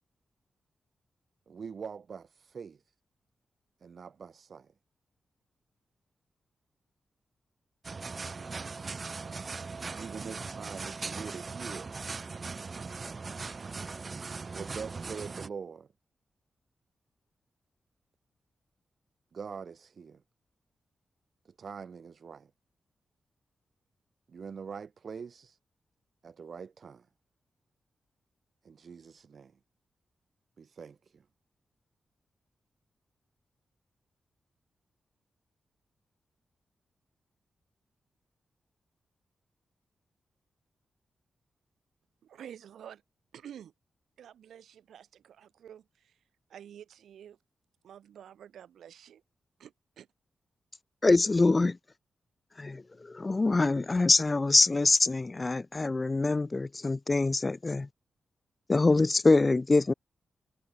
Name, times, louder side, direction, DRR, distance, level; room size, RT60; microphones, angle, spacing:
voice 1, 1.5-2.8 3.8-4.7 10.0-12.0 14.5-15.9 19.3-20.2 21.6-22.5 24.3-25.6 26.2-27.0 28.7-29.5 30.6-31.0, right 6 dB, 65° right, 1.7 m, -43 dB
sound 1, 7.8-15.5, right 4 dB, 50° right, 1.8 m, -39 dB
voice 2, 42.2-43.0 43.3-43.7 44.2-46.2 46.5-47.4 47.8-49.2 49.6-50.1, right 9 dB, 90° right, 4.1 m, -49 dB
voice 3, 51.0-51.8 52.6-57.9 58.7-59.9, left 3 dB, 35° left, 0.4 m, -24 dB
cardioid pair, 55°, 0 cm